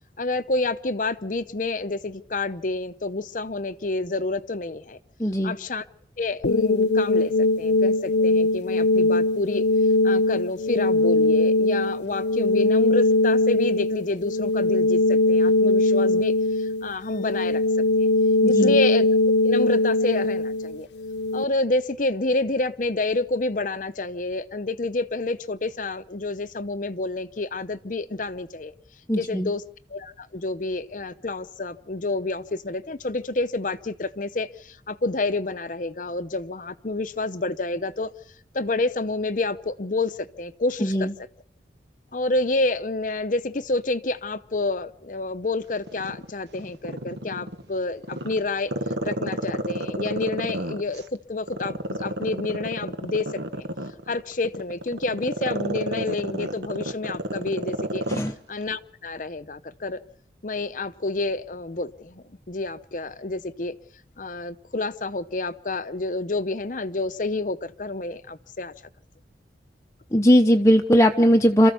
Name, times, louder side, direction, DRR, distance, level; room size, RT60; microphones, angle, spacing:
voice 1, 0.2-5.0 5.4-5.8 6.2-9.6 10.0-17.6 18.0-18.1 18.5-19.1 19.4-20.9 21.3-28.7 29.1-29.6 29.9-38.1 38.5-41.1 42.1-48.7 49.0-53.7 54.1-58.0 58.5-60.0 60.4-63.8 64.2-68.7, left 2 dB, 45° left, 11 dB, 0.7 m, -29 dB
voice 2, 5.2-5.5 18.4-18.8 29.1-29.5 40.8-41.1 58.1-58.3 70.1-71.7, equal, 15° left, 4 dB, 0.8 m, -19 dB
sound 1, 6.4-21.4, left 2 dB, 75° left, 0.9 m, -21 dB
Growling, 45.9-47.6 48.0-51.0 51.5-58.3 58.6-58.7, right 1 dB, 70° right, 1.5 m, -30 dB
27.5 x 14.5 x 6.9 m, 0.66 s
head